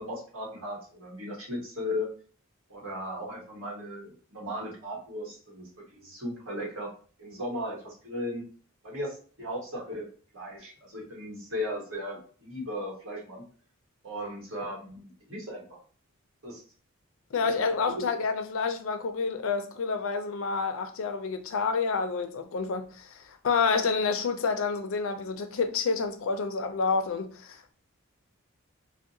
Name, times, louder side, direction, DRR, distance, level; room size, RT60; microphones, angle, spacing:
voice 1, 0.0-2.1 2.7-6.9 7.2-8.4 8.8-10.1 10.3-13.4 14.0-15.0 15.3-15.8 16.4-16.6 17.4-18.2, left 1 dB, 70° right, 1.3 m, -36 dB
voice 2, 17.3-27.7, left 4 dB, 70° left, 0.4 m, -29 dB
3.5 x 2.1 x 2.7 m
head